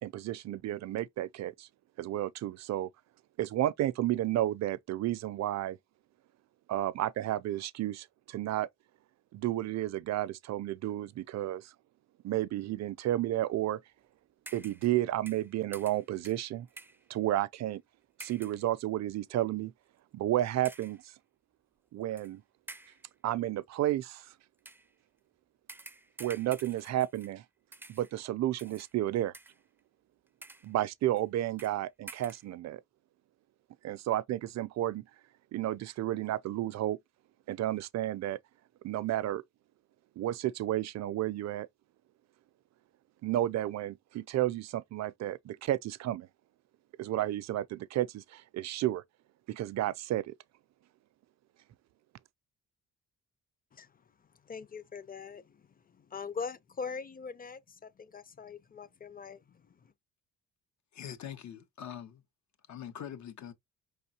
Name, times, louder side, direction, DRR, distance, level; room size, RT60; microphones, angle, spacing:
voice 1, 0.0-1.7 2.0-2.9 3.4-5.8 6.7-8.7 9.3-11.7 12.2-13.8 14.5-16.7 17.1-17.8 18.2-19.7 20.1-21.0 21.9-22.4 23.2-24.3 26.2-27.4 27.9-29.3 30.6-32.8 33.8-35.1 35.5-37.0 37.5-38.4 38.8-39.4 40.2-41.7 43.2-46.3 47.0-49.0 49.5-50.3, right 13 dB, 65° right, 0.5 m, -32 dB
sound 1, 14.5-15.0 15.3-17.1 18.2-18.6 19.4-19.5 20.6-21.0 22.2-22.3 22.7-23.1 24.6-24.9 25.7-27.4 27.7-28.2 28.6-28.9 29.3-29.8 30.3-30.7 31.2-31.3 31.6-31.8 32.1-32.5, right 2 dB, 5° right, 0.4 m, -50 dB
voice 2, 54.5-55.6 55.9-59.7, left 5 dB, 30° left, 0.7 m, -42 dB
voice 3, 60.9-62.2 62.7-63.5, left 9 dB, 70° left, 1.2 m, -43 dB
5.2 x 3.6 x 2.8 m
cardioid pair, 90°, 30 cm